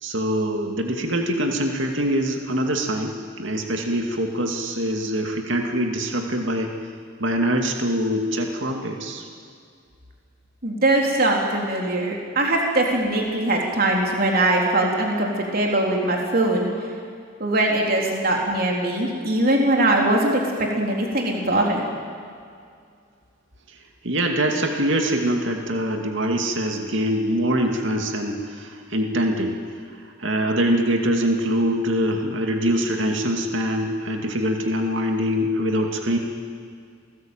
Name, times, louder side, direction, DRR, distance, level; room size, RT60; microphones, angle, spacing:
voice 1, 0.0-6.7 7.2-9.3 23.7-23.8 24.0-29.6 29.9-36.2, equal, 65° right, 3 dB, 2.4 m, -24 dB
voice 2, 10.6-16.7 17.4-21.9, right 1 dB, 45° right, 0 dB, 3.7 m, -21 dB
28.0 x 19.5 x 9.1 m, 2.3 s
head